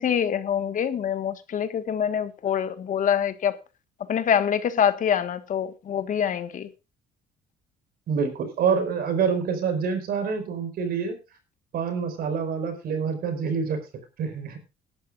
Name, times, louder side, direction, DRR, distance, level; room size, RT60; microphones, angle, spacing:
voice 1, 0.0-3.5 4.1-6.7, left 8 dB, 50° left, 1.5 m, -25 dB
voice 2, 8.1-11.2 11.7-13.8 14.2-14.6, right 6 dB, 65° right, 5.1 m, -26 dB
19.5 x 11.5 x 2.5 m
cardioid pair, 110°, 17 cm